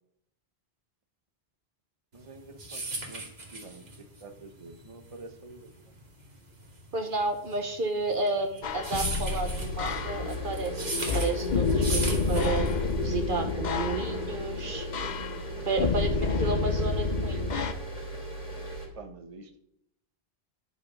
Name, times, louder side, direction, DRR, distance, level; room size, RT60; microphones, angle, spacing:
voice 1, 2.1-3.3 3.5-5.7 15.9-16.6 18.9-19.6, right 3 dB, 35° right, 7 dB, 1.1 m, -47 dB
turn pages, 2.2-13.0, right 2 dB, 80° right, 2.4 m, -37 dB
voice 2, 6.9-12.7 13.0-14.9 15.7-17.7, right 3 dB, 55° right, 6 dB, 1.2 m, -31 dB
sound 1, 8.6-17.7, left 4 dB, 50° left, 0.7 m, -29 dB
sound 2, 9.4-18.9, right 1 dB, 30° left, 2.9 m, -39 dB
10.5 x 5.1 x 6.2 m, 0.76 s
omnidirectional pair, 1.0 m